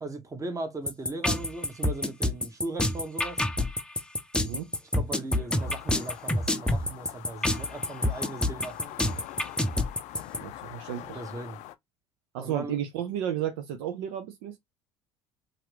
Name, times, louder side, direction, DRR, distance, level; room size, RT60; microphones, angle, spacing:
voice 1, 0.0-3.4 4.9-8.9 11.0-11.6 12.4-12.8, right 2 dB, 25° right, 1.0 m, -38 dB
sound 1, 0.9-10.4, left 1 dB, 5° left, 0.5 m, -27 dB
sound 2, 5.5-11.7, left 14 dB, 60° left, 0.4 m, -44 dB
voice 2, 10.4-11.2 12.3-14.6, right 10 dB, 70° right, 0.5 m, -33 dB
2.8 x 2.5 x 3.2 m
hypercardioid pair, 65°, 14 cm